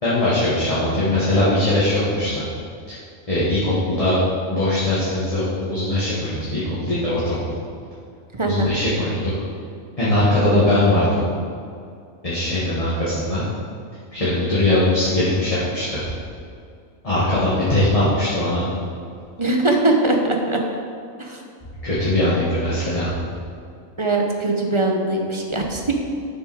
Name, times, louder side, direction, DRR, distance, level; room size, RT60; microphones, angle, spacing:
voice 1, 0.0-2.4 2.9-3.0 3.3-4.2 4.5-7.4 8.4-9.3 10.0-11.2 12.2-13.4 14.1-16.1 17.0-18.6 21.8-23.1, left 1 dB, 25° left, -9 dB, 1.8 m, -20 dB
voice 2, 8.4-8.7 19.4-20.6 21.2-21.4 24.0-25.9, right 2 dB, 25° right, 1 dB, 0.8 m, -21 dB
9.7 x 6.9 x 4.8 m, 2.4 s
omnidirectional pair, 1.4 m